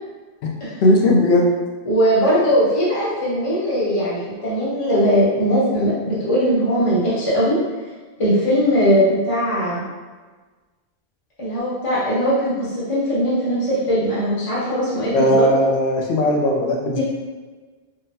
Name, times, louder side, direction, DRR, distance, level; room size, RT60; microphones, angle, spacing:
voice 1, 0.8-1.5 15.1-17.0, left 1 dB, 75° left, -1 dB, 0.8 m, -17 dB
voice 2, 1.8-7.6 8.2-9.8 11.4-15.5 16.9-17.0, equal, 30° left, -9 dB, 1.0 m, -19 dB
3.8 x 2.1 x 2.7 m, 1.4 s
omnidirectional pair, 1.1 m